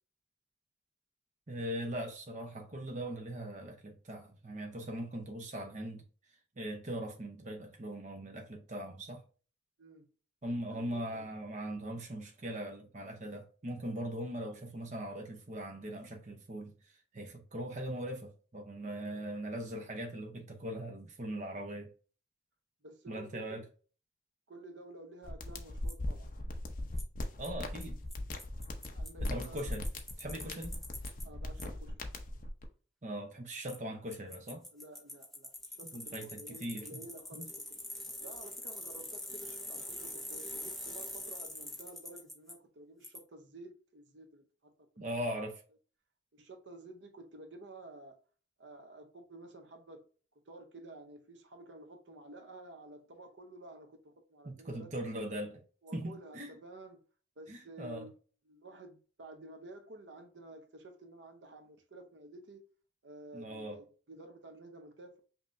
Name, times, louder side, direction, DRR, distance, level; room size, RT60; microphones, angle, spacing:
voice 1, 1.5-6.0 6.6-9.2 10.4-16.7 17.1-21.9 23.1-23.6 27.4-28.0 29.2-29.9 30.2-30.8 33.0-34.6 35.9-37.0 37.3-37.5 45.0-45.6 54.4-55.6 55.9-56.5 57.5-58.1 63.3-63.8, right 1 dB, 40° right, 0.7 m, -40 dB
voice 2, 10.7-11.3 18.9-19.2 22.8-23.6 24.5-26.3 28.8-29.8 30.5-30.6 31.2-32.0 34.7-37.8 38.2-45.4 46.3-48.2 48.6-50.1 50.4-54.9 55.8-57.0 57.4-58.2 58.4-62.6 63.0-65.2, right 2 dB, 70° right, 0.8 m, -52 dB
sound 1, 25.2-32.7, left 1 dB, 45° left, 0.6 m, -39 dB
Bicycle, 25.9-26.0 27.0-27.1 27.4-27.5 27.8-27.9 28.1-28.2 28.4-31.2 31.6-31.7 33.7-33.8 34.1-42.5 43.0-43.2, left 1 dB, ahead, 0.6 m, -44 dB
5.5 x 2.8 x 2.5 m
head